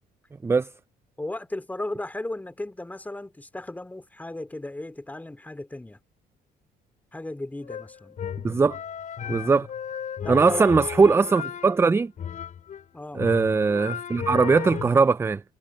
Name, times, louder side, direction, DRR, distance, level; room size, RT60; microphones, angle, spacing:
voice 1, 1.2-6.0 7.1-8.2 9.3-9.5 10.2-10.7 12.9-13.2, left 2 dB, 10° left, 2.7 m, -35 dB
sound 1, 7.6-12.8 13.2-15.0, left 8 dB, 50° left, 6.5 m, -35 dB
voice 2, 8.4-8.8 9.3-9.7 10.3-12.1 13.1-15.4, right 4 dB, 15° right, 0.4 m, -20 dB
cardioid pair, 110°, 17 cm